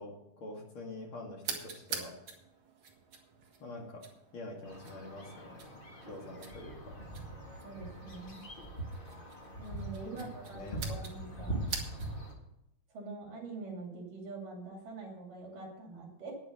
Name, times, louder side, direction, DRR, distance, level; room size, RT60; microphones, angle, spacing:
voice 1, 0.0-2.1 3.6-4.0 4.3-5.6 6.0-6.9 10.1-10.8, left 2 dB, 45° left, 0 dB, 2.6 m, -46 dB
sound 1, 1.4-12.3, right 5 dB, 45° right, 2.1 m, -46 dB
sound 2, 4.6-12.3, right 1 dB, 25° left, 1.2 m, -42 dB
voice 2, 7.6-8.4 9.6-11.6 12.9-16.3, right 3 dB, 80° right, 0 dB, 4.1 m, -45 dB
10.0 x 9.8 x 6.5 m, 0.83 s
omnidirectional pair, 3.8 m